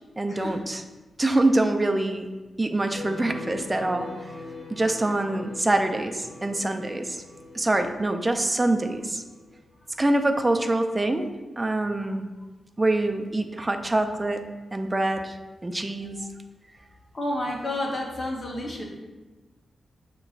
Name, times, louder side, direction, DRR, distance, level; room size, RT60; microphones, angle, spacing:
voice 1, 0.2-0.8 1.2-2.3 2.6-4.1 4.7-7.2 7.5-9.2 10.0-11.3 11.6-12.3 12.8-14.4 14.7-15.4 15.6-16.2, right 2 dB, 25° right, 6 dB, 0.4 m, -25 dB
sound 1, 2.9-9.6, left 3 dB, 25° left, 1.3 m, -42 dB
voice 2, 17.1-18.8, left 1 dB, 45° left, -1 dB, 0.9 m, -30 dB
6.4 x 2.9 x 2.4 m, 1.2 s
cardioid pair, 75°, 0 cm